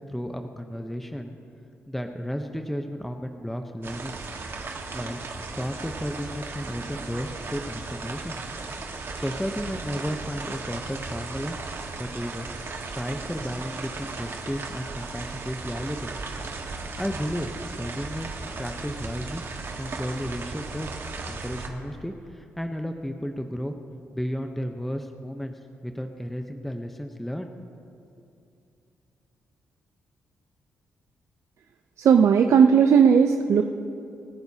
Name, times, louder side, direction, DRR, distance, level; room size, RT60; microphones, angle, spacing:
voice 1, 0.1-1.4 1.9-4.2 4.9-8.4 9.1-11.6 12.0-12.5 12.8-16.1 17.0-17.5 17.8-19.4 19.8-21.0 21.3-23.8 24.1-25.5 25.8-27.5 28.0-28.2, equal, 5° left, 5 dB, 0.8 m, -33 dB
sound 1, 3.8-21.7, right 3 dB, 50° right, 1.5 m, -36 dB
voice 2, 32.0-33.6, right 7 dB, 65° right, 6 dB, 0.6 m, -17 dB
26.5 x 10.0 x 2.8 m, 2.6 s
cardioid pair, 70°, 5 cm